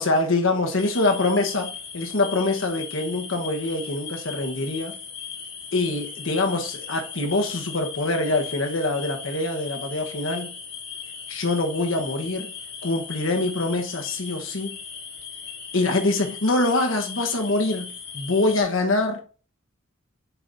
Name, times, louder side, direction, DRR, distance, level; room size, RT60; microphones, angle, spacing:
voice 1, 0.0-1.7 1.9-5.0 5.7-10.5 11.3-12.5 12.8-14.8 15.7-19.2, left 2 dB, 85° left, 1.2 m, -24 dB
sound 1, 0.8-18.6, left 6 dB, 60° left, 2.4 m, -38 dB
8.2 x 5.7 x 2.7 m
head